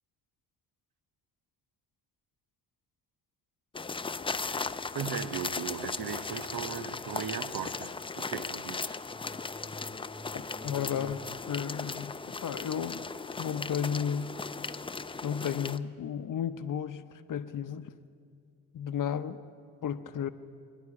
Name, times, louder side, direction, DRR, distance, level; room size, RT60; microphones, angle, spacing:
sound 1, 3.7-15.8, left 4 dB, 15° left, 0.5 m, -37 dB
voice 1, 4.4-9.1, right 8 dB, 70° right, 12 dB, 0.9 m, -38 dB
voice 2, 10.3-12.1 12.4-13.1 13.4-14.4 15.2-17.9 18.7-19.4 19.8-20.3, left 8 dB, 55° left, 11 dB, 0.8 m, -33 dB
26.0 x 11.0 x 4.8 m, 2.2 s
supercardioid pair, 60°, 38 cm